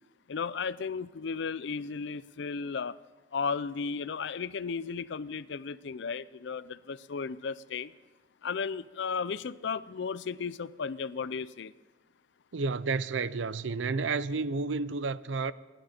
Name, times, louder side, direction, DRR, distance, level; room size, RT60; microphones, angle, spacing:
voice 1, 0.3-3.0 3.3-7.9 8.4-11.7, left 5 dB, 65° left, 0.5 m, -34 dB
voice 2, 12.5-15.5, right 4 dB, 75° right, 0.5 m, -31 dB
27.5 x 11.0 x 4.4 m
head